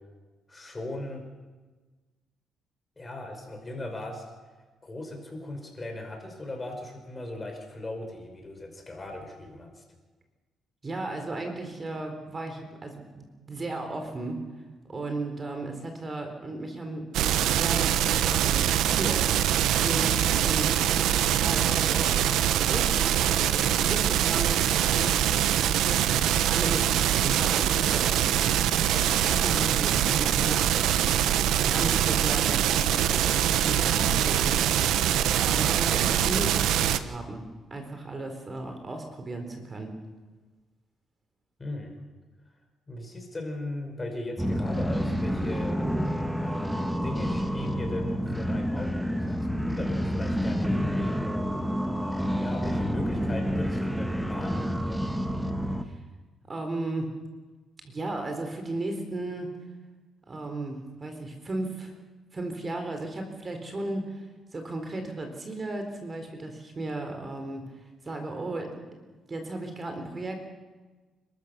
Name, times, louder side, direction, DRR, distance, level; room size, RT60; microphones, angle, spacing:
voice 1, 0.5-1.2 3.0-4.2 4.8-9.8 41.6-41.9 42.9-45.8 46.4-51.3 51.9-55.2, left 2 dB, 25° left, 3 dB, 5.4 m, -38 dB
voice 2, 10.8-14.4 14.9-19.5 19.8-20.7 21.4-22.2 22.7-25.2 25.9-28.6 28.9-31.2 31.7-34.7 35.4-37.4 37.7-39.9 55.8-56.0 56.5-57.1 57.8-59.5 60.3-61.9 62.3-67.6 68.0-68.8 69.3-70.4, right 2 dB, 30° right, 5 dB, 4.0 m, -35 dB
sound 1, 17.1-37.0, right 10 dB, 85° right, 1.0 m, -24 dB
sound 2, 44.4-55.8, equal, 5° right, 1.6 m, -29 dB
30.0 x 13.5 x 6.8 m, 1.3 s
cardioid pair, 90°, 0 cm